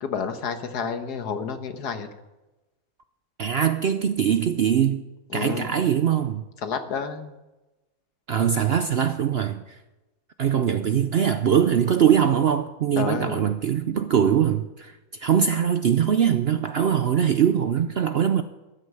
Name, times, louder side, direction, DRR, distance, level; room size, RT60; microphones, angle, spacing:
voice 1, 0.0-2.1 5.3-5.8 6.6-7.3 13.0-13.4, left 6 dB, 90° left, 1.7 m, -30 dB
voice 2, 3.4-5.1 5.3-6.4 8.3-9.8 10.4-18.4, right 8 dB, 60° right, 0.6 m, -22 dB
13.0 x 9.7 x 6.9 m
omnidirectional pair, 1.7 m